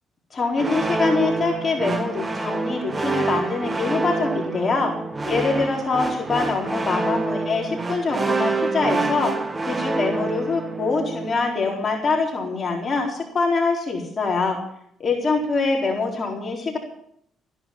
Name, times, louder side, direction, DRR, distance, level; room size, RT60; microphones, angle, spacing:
voice 1, 0.3-4.9 5.2-9.3 9.7-14.6 15.0-16.8, left 4 dB, 40° left, 0 dB, 4.2 m, -24 dB
sound 1, 0.6-11.5, right 3 dB, 25° right, 1.7 m, -27 dB
15.0 x 10.5 x 7.4 m, 0.69 s
cardioid pair, 90°, 0 cm